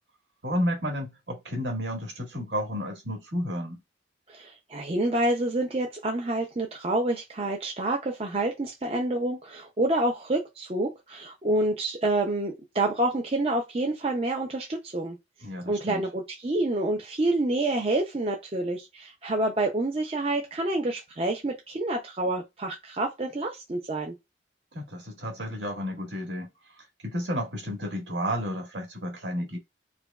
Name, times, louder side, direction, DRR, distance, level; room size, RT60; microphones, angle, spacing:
voice 1, 0.4-3.8 15.4-16.0 24.7-26.5 26.8-29.6, equal, 70° right, 1.7 m, -32 dB
voice 2, 4.3-15.2 15.7-24.1, right 2 dB, 35° right, 0.6 m, -28 dB
4.9 x 2.2 x 2.3 m
head